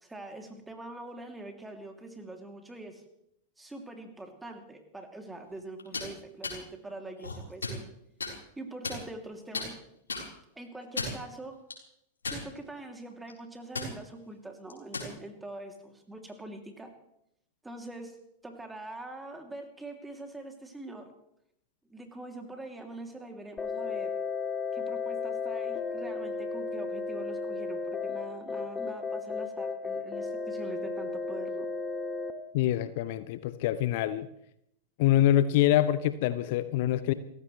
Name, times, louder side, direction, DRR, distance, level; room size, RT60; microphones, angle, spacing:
voice 1, 0.0-3.0 3.6-7.8 8.6-9.8 10.6-11.6 12.3-16.9 17.6-18.2 18.4-21.1 21.9-24.1 24.7-31.7, right 2 dB, 10° right, 4 dB, 2.8 m, -44 dB
sound 1, 5.8-6.1 6.4-6.6 7.2-7.8 8.2-8.3 8.8-9.3 9.5-9.7 10.1-10.3 10.8-11.2 11.7-11.8 12.2-12.8 13.1-13.3 13.7-13.9 14.7-15.1, left 3 dB, 75° left, 4.2 m, -34 dB
sound 2, 23.6-32.3, left 4 dB, 15° left, 1.4 m, -34 dB
voice 2, 32.5-34.3 35.0-37.1, left 12 dB, 50° left, 14 dB, 0.7 m, -25 dB
29.5 x 15.0 x 3.3 m, 0.76 s
figure-of-eight pair, 90°, 0 cm